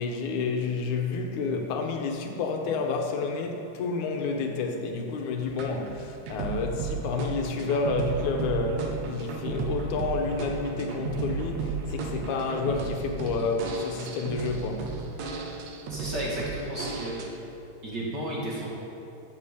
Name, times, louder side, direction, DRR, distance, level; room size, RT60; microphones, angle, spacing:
voice 1, 0.0-14.9, left 4 dB, 80° left, 3 dB, 2.5 m, -30 dB
sound 1, 5.5-17.3, right 4 dB, 70° right, 2.2 m, -34 dB
voice 2, 15.9-17.4 17.8-18.7, right 1 dB, 40° right, -5 dB, 2.1 m, -33 dB
14.5 x 7.9 x 5.1 m, 2.6 s
omnidirectional pair, 3.4 m